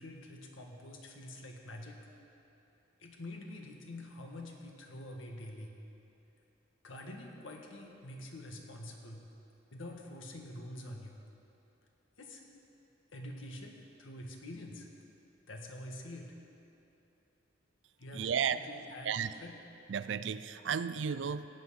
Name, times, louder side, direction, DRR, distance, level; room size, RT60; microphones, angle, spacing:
voice 1, 0.0-2.0 3.0-5.7 6.8-9.2 9.7-11.2 12.2-12.4 13.1-14.9 15.5-16.3 18.0-19.6, left 1 dB, 85° left, 1 dB, 1.6 m, -46 dB
voice 2, 18.1-18.6 19.0-19.3 19.9-21.5, right 7 dB, 70° right, 13 dB, 0.4 m, -33 dB
18.0 x 8.1 x 5.7 m, 2.9 s
head